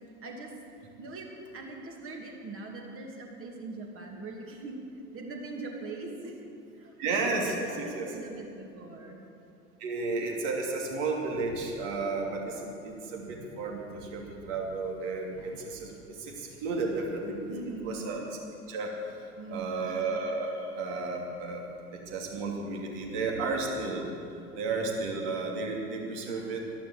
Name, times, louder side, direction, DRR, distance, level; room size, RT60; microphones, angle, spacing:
voice 1, 0.2-0.5 1.0-6.4 6.7-7.0 7.5-9.2 17.5-18.1 19.4-19.9, right 2 dB, 30° right, 1 dB, 2.5 m, -41 dB
voice 2, 7.0-8.1 9.8-17.6 17.8-18.2 18.7-21.7 21.9-24.0 24.5-26.7, right 3 dB, 50° right, 0 dB, 2.9 m, -33 dB
12.5 x 12.0 x 7.6 m, 2.6 s
figure-of-eight pair, 85°, 46 cm